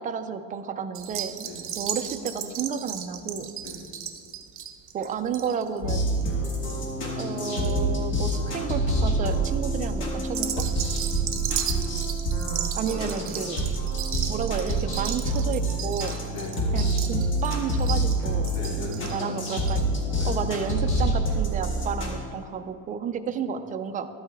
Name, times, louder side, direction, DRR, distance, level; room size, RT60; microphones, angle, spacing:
voice 1, 0.0-3.5 4.9-6.2 7.0-10.7 12.8-13.6 14.3-16.2 16.7-18.5 19.1-19.9 20.2-24.1, right 7 dB, 25° right, 8 dB, 0.3 m, -31 dB
sound 1, 0.9-7.7 8.0-8.5 9.1-9.4 10.2-20.0 20.3-20.4 20.6-20.7, right 9 dB, 40° right, 0.7 m, -35 dB
sound 2, 5.8-22.2, right 1 dB, 35° left, 1.7 m, -27 dB
voice 2, 11.0-11.7 12.9-13.2 16.3-16.7 18.5-19.4 20.1-20.5 23.2-23.3, left 1 dB, 65° left, -2 dB, 2.3 m, -39 dB
12.0 x 8.7 x 3.5 m, 2.3 s
cardioid pair, 155°, 33 cm